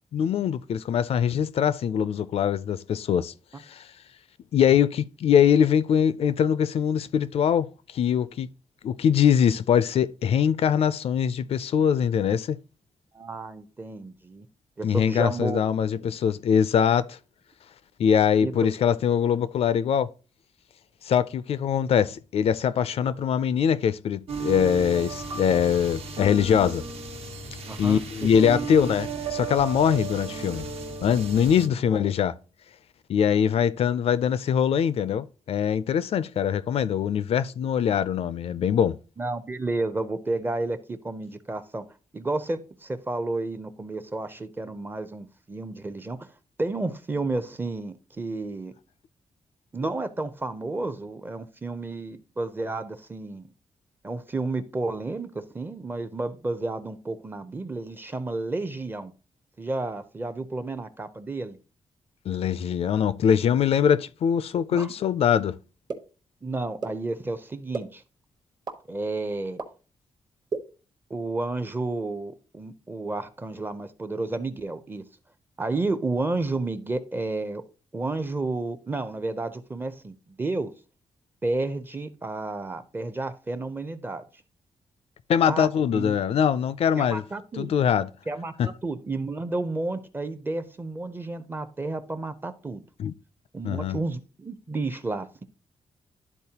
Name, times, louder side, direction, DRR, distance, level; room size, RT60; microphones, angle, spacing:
voice 1, 0.1-3.3 3.7-3.9 4.5-8.5 8.8-12.6 14.8-17.2 18.0-20.1 21.0-26.8 27.8-30.7 31.0-32.3 33.1-39.0 62.3-65.6 85.3-87.2 87.6-88.1 88.6-88.7 93.0-93.1 93.6-94.0, left 8 dB, 65° left, 0.4 m, -23 dB
voice 2, 13.1-14.5 14.8-15.6 18.4-18.7 27.7-28.0 28.5-28.7 31.9-32.0 36.8-36.9 39.2-41.8 42.1-46.3 46.6-48.7 49.7-53.5 54.0-59.1 59.6-61.6 64.7-64.9 66.4-68.0 68.9-69.6 71.1-75.0 75.6-77.6 77.9-80.7 81.4-84.2 85.5-86.1 87.0-87.7 88.3-92.8 93.5-95.4, right 2 dB, 20° right, 0.5 m, -31 dB
sound 1, 24.3-31.7, right 4 dB, 65° right, 1.1 m, -35 dB
sound 2, 65.9-66.0 66.8-66.9 67.7-67.8 68.7-68.8 69.6-69.7 70.5-70.6, right 4 dB, 40° right, 1.0 m, -29 dB
12.0 x 4.1 x 2.8 m
wide cardioid pair, 160°, 11 cm